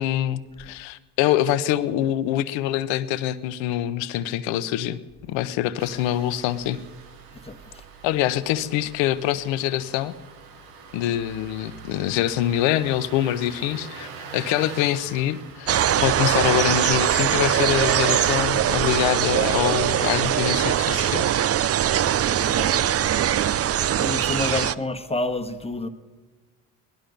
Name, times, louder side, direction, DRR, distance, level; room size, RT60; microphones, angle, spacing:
voice 1, 0.0-5.0 5.3-6.8 8.0-10.1 10.9-21.3, left 12 dB, 75° left, 14 dB, 0.9 m, -25 dB
Engine starting, 5.8-19.2, right 5 dB, 90° right, 1.6 m, -44 dB
voice 2, 7.3-7.8 22.1-22.8 24.0-25.9, left 2 dB, 15° left, 7 dB, 1.5 m, -30 dB
sound 1, 15.7-24.7, right 10 dB, 35° right, 0.5 m, -22 dB
18.5 x 12.0 x 5.3 m, 1.3 s
hypercardioid pair, 65°, 45 cm